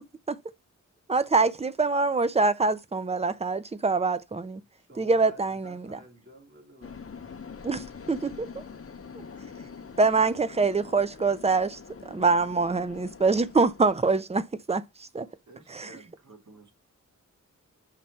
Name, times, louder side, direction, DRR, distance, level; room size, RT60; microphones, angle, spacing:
voice 1, 1.1-4.6 5.0-6.0 7.6-8.5 10.0-11.8 12.1-15.3 15.7-15.9, right 4 dB, 20° right, 0.5 m, -25 dB
voice 2, 4.8-7.3 15.2-15.4, right 1 dB, 40° right, 3.1 m, -52 dB
sound 1, 6.8-14.2, left 5 dB, 45° left, 0.8 m, -45 dB
voice 3, 15.5-16.7, right 2 dB, 65° right, 1.9 m, -52 dB
5.7 x 3.2 x 5.5 m
wide cardioid pair, 60°, 31 cm